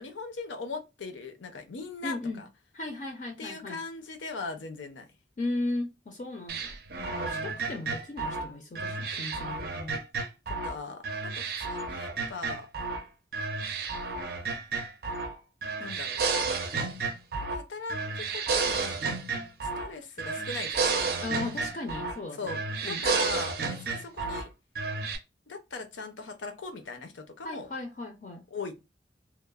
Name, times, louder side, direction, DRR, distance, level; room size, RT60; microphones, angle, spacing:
voice 1, 0.0-2.5 3.4-5.1 7.0-7.6 10.5-12.7 15.8-16.2 17.5-19.1 19.6-20.8 22.4-24.5 25.5-27.7 28.5-28.7, left 4 dB, 90° left, 0.5 m, -40 dB
voice 2, 2.0-2.4 2.7-3.8 5.4-6.8 7.1-10.0 21.2-23.0 27.4-28.4, left 2 dB, 40° left, 0.4 m, -36 dB
sound 1, 6.5-10.8 11.0-13.0 13.3-15.3 15.6-17.6 17.9-19.9 20.2-22.2 22.5-24.4 24.7-25.2, right 4 dB, 55° right, 0.4 m, -31 dB
2.9 x 2.0 x 2.3 m
head